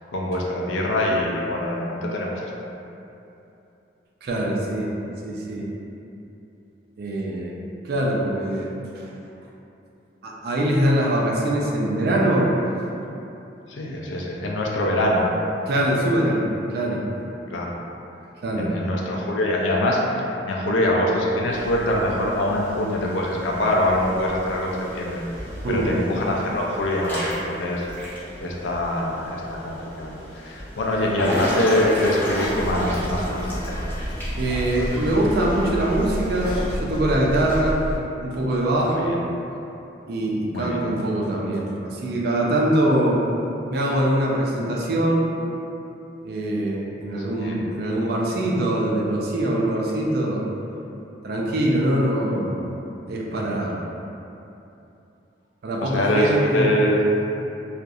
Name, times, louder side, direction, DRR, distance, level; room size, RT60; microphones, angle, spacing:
voice 1, 0.0-2.5 13.7-15.3 17.5-17.8 18.5-25.2 25.7-27.9 28.4-33.8 38.7-39.2 40.5-40.9 47.4-47.6 55.8-57.0, left 1 dB, 80° left, -2 dB, 0.3 m, -24 dB
voice 2, 4.2-4.9 5.2-5.7 7.0-7.6 7.8-9.1 10.2-12.5 15.7-17.1 18.4-18.7 25.6-26.0 31.0-31.1 34.4-37.8 38.2-39.2 40.1-43.2 43.7-45.3 46.2-50.4 51.2-52.6 53.1-53.8 55.6-56.7, right 1 dB, 55° right, -3 dB, 0.3 m, -23 dB
Water / Splash splatter / Drip, 21.5-36.8, equal, 10° left, 0.5 m, -34 dB
sound 1, 32.4-38.0, equal, 30° left, 1.2 m, -30 dB
2.3 x 2.0 x 2.6 m, 2.8 s
head